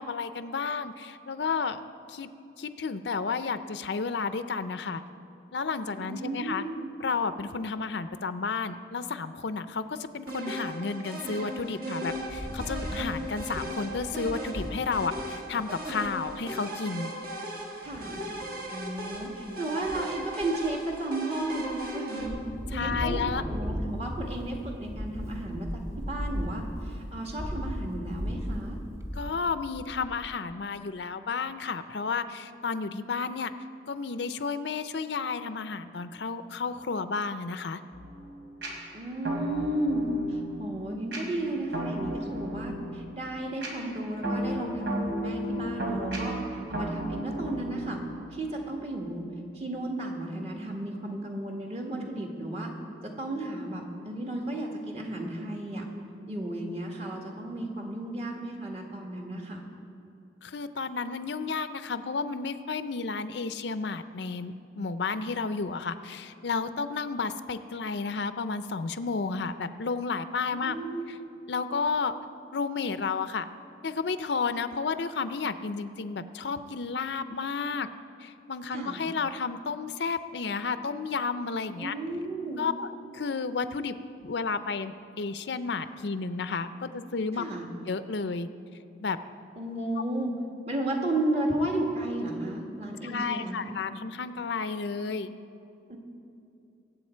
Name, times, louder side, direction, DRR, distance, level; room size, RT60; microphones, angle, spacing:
voice 1, 0.0-1.8 2.1-2.3 2.6-5.0 5.5-6.6 7.0-17.1 22.7-23.4 29.1-33.5 33.9-37.8 60.4-70.8 71.5-72.1 72.5-73.5 73.8-77.9 78.2-81.9 82.6-82.9 83.1-83.9 84.2-87.4 87.9-88.5 89.0-89.2 93.0-95.3, left 4 dB, 70° left, 11 dB, 0.5 m, -32 dB
voice 2, 6.0-6.9 17.8-18.2 18.7-22.4 22.7-28.8 38.9-48.0 48.3-49.2 49.5-52.7 53.0-55.9 56.3-59.6 70.5-71.1 78.7-79.0 81.8-82.7 87.3-87.7 89.6-90.3 90.7-93.6 95.9-96.0, right 1 dB, 35° right, 0 dB, 1.7 m, -33 dB
sound 1, 10.3-22.3, right 1 dB, 50° right, 1.7 m, -37 dB
Wind, 12.2-15.2 15.7-15.8 16.0-16.4 17.9-18.5 19.0-19.5 19.8-21.0 21.4-21.9 22.2-30.4, equal, 15° right, 0.9 m, -37 dB
sound 2, 37.9-48.5, right 1 dB, 85° right, 3.1 m, -35 dB
23.5 x 8.0 x 4.5 m, 2.7 s
head